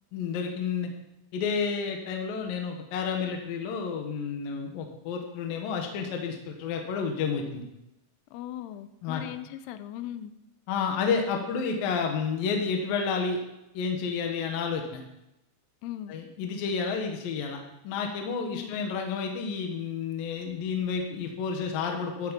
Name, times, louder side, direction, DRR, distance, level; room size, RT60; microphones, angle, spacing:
voice 1, 0.1-0.9 1.3-7.6 9.0-9.2 10.7-13.4 13.7-15.0 16.1-22.3, left 5 dB, 60° left, 3 dB, 2.6 m, -30 dB
voice 2, 8.3-10.3 15.8-16.1 18.5-18.8, left 12 dB, 80° left, 11 dB, 2.3 m, -38 dB
12.5 x 12.0 x 5.3 m, 0.89 s
omnidirectional pair, 5.6 m